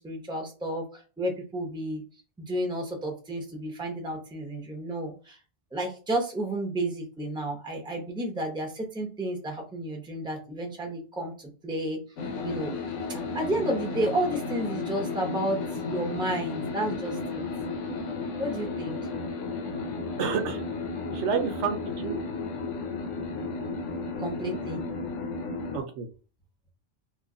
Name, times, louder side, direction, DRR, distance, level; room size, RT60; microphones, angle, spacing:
voice 1, 0.0-2.0 2.4-5.4 5.7-12.0 12.4-12.7 13.1-17.4 18.4-19.0 24.2-24.8, right 1 dB, 5° right, 2 dB, 0.7 m, -31 dB
sound 1, 12.2-25.8, left 3 dB, 85° left, 1.0 m, -33 dB
voice 2, 20.2-20.6 21.1-22.2 25.7-26.1, right 6 dB, 75° right, 6 dB, 0.9 m, -29 dB
3.0 x 2.4 x 3.7 m, 0.36 s
omnidirectional pair, 1.2 m